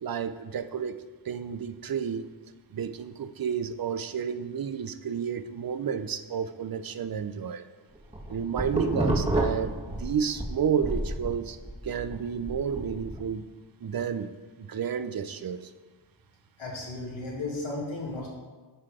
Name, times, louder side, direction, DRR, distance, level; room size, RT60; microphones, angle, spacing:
voice 1, 0.0-2.3 2.7-7.6 8.3-11.6 11.8-13.4 13.8-14.3 14.6-15.7, right 7 dB, 50° right, 11 dB, 0.5 m, -31 dB
sound 1, 8.0-10.5 10.8-13.2, right 1 dB, 15° right, 1.5 m, -29 dB
voice 2, 16.6-18.3, left 2 dB, 75° left, -3 dB, 2.3 m, -34 dB
11.0 x 3.9 x 4.9 m, 1.3 s
wide cardioid pair, 70°, 48 cm